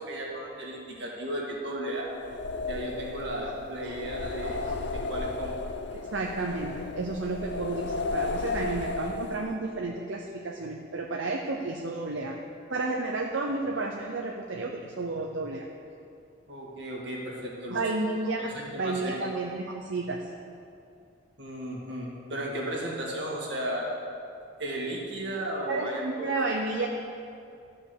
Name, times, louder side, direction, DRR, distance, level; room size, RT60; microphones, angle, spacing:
voice 1, 0.0-2.1 2.6-4.6 4.9-5.5 16.5-17.8 18.4-19.2 21.4-23.9 24.6-26.6, right 1 dB, 60° right, -2 dB, 2.0 m, -35 dB
sound 1, 2.1-9.7, left 3 dB, 65° left, 0.5 m, -34 dB
voice 2, 4.4-4.8 5.9-12.3 12.7-15.6 17.7-20.3 25.7-26.9, right 3 dB, 80° right, 1 dB, 0.7 m, -32 dB
13.5 x 5.4 x 6.8 m, 2.5 s
head